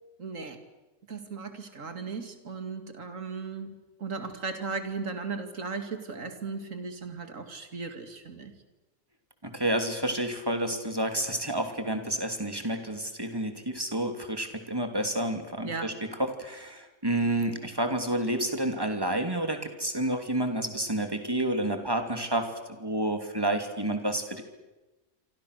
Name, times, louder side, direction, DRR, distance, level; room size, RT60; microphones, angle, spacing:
voice 1, 0.2-0.6 1.1-3.7 4.0-8.5 15.6-15.9, right 4 dB, 75° right, 7 dB, 2.8 m, -36 dB
voice 2, 9.4-15.9 16.2-22.5 22.8-24.4, right 1 dB, 15° right, 6 dB, 2.9 m, -29 dB
27.5 x 26.0 x 6.7 m, 1.1 s
omnidirectional pair, 1.4 m